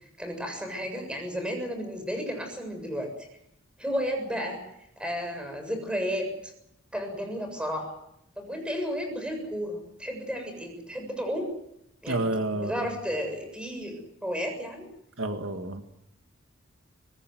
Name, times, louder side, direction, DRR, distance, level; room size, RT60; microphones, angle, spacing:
voice 1, 0.2-3.1 3.8-4.6 5.0-6.5 6.9-8.0 8.4-11.5 12.0-12.2 12.5-14.9, equal, 5° right, 5 dB, 7.3 m, -33 dB
voice 2, 12.1-12.9 15.2-15.8, right 2 dB, 80° right, 6 dB, 2.0 m, -29 dB
24.5 x 20.0 x 7.9 m, 0.79 s
head